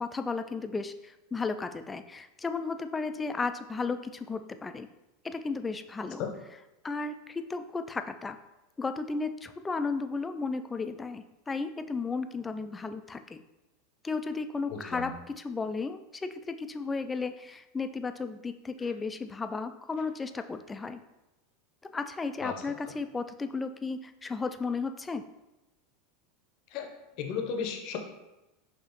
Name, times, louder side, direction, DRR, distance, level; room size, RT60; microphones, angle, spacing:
voice 1, 0.0-4.9 5.2-6.2 6.8-8.4 8.8-13.4 14.0-21.0 21.8-25.2, left 4 dB, 15° left, 9 dB, 0.3 m, -34 dB
voice 2, 14.7-15.1 22.4-22.5 26.7-26.9 27.2-28.0, left 7 dB, 55° left, 4 dB, 0.7 m, -34 dB
5.5 x 2.7 x 2.9 m, 0.99 s
hypercardioid pair, 85°, 0 cm